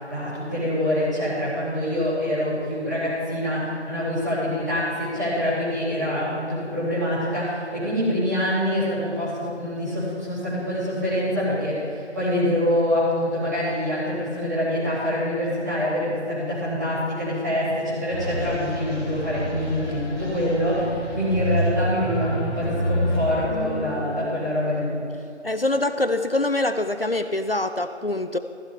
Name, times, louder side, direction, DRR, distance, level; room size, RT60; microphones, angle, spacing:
voice 1, 0.1-25.0, left 1 dB, 15° right, -12 dB, 3.2 m, -25 dB
sound 1, 18.1-24.3, equal, 20° left, 2.5 m, -28 dB
voice 2, 25.4-28.4, left 2 dB, 55° left, 9 dB, 0.5 m, -24 dB
15.0 x 12.0 x 3.6 m, 2.5 s
figure-of-eight pair, 175°, 36 cm